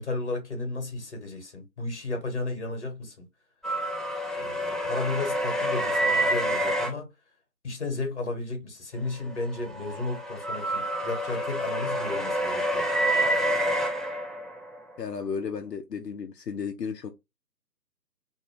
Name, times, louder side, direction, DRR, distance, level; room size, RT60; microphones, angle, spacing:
voice 1, 0.0-3.3 4.3-7.1 7.6-12.8, left 2 dB, 45° left, 1.1 m, -33 dB
sound 1, 3.6-6.9 9.3-14.8, right 1 dB, ahead, 0.3 m, -28 dB
voice 2, 15.0-17.1, left 6 dB, 80° left, 0.6 m, -33 dB
2.6 x 2.1 x 2.8 m
figure-of-eight pair, 150°, 49 cm